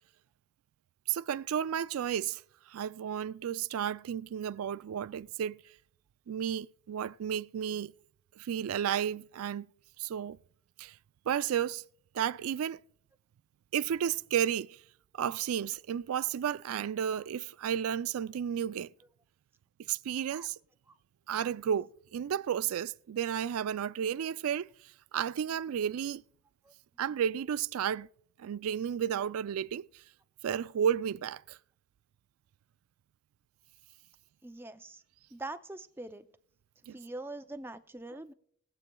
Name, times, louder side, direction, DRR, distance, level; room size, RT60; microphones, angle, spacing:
voice 1, 1.1-2.4 2.7-5.6 6.3-7.9 8.4-9.7 10.0-10.4 10.8-11.0 11.3-11.8 12.1-12.8 13.7-14.8 15.1-18.9 19.9-20.6 21.3-24.7 25.1-26.2 27.0-28.1 28.4-29.9 30.4-31.6 36.9-37.0, right 9 dB, 85° right, 0.3 m, -32 dB
voice 2, 34.4-35.0 35.3-36.2 36.9-38.3, right 2 dB, 10° right, 0.4 m, -43 dB
20.5 x 7.8 x 2.2 m
head